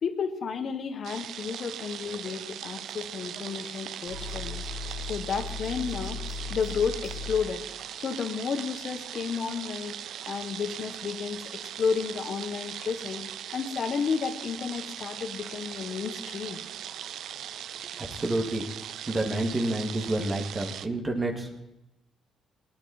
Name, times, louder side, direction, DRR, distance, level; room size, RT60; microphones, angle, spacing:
voice 1, 0.0-4.6 5.1-6.2 6.5-7.6 8.0-9.9 10.3-11.5 11.8-13.2 13.5-16.6, left 6 dB, 55° left, 8 dB, 1.5 m, -32 dB
sound 1, 1.0-20.9, right 10 dB, 75° right, 0.5 m, -39 dB
sound 2, 4.1-7.6, left 4 dB, 55° right, 3.6 m, -37 dB
voice 2, 17.9-18.6 19.1-21.6, right 1 dB, 25° right, 2 dB, 2.2 m, -29 dB
18.5 x 9.6 x 4.3 m, 0.91 s
cardioid pair, 90°, 0 cm